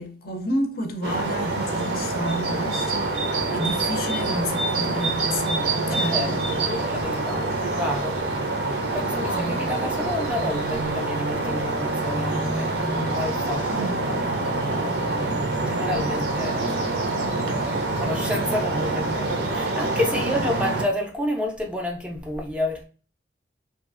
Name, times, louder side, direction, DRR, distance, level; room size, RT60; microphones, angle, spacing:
voice 1, 0.0-3.3 3.5-6.2 9.2-9.7 13.7-14.0 20.2-20.3, equal, 55° left, 0.4 m, -30 dB
sound 1, 1.0-20.8, right 2 dB, 65° right, 0.6 m, -26 dB
voice 2, 5.9-8.2 8.9-12.8 13.1-15.0 15.2-15.4 15.6-22.8, left 1 dB, 5° right, 0.4 m, -30 dB
2.7 x 2.3 x 2.4 m
head